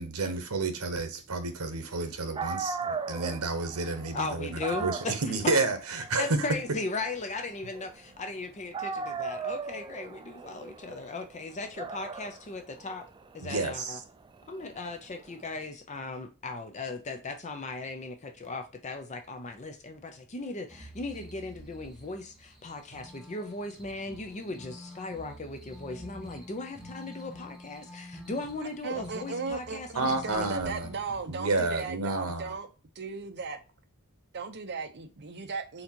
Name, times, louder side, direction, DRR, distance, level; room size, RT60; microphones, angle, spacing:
voice 1, 0.0-6.5 13.4-14.0 29.9-30.9 31.3-32.6, right 3 dB, 85° right, 0.9 m, -30 dB
Dog, 2.1-2.2 2.4-8.4 8.7-15.5, right 4 dB, 20° right, 0.3 m, -38 dB
voice 2, 4.1-5.2 6.2-13.0 13.3-14.0 14.5-30.5, left 3 dB, 35° left, 0.6 m, -37 dB
sound 1, 20.7-31.2, equal, 5° right, 0.9 m, -48 dB
voice 3, 28.8-30.0 30.2-32.7 32.9-33.6 34.3-35.8, right 4 dB, 50° right, 0.7 m, -36 dB
4.3 x 3.9 x 2.8 m
head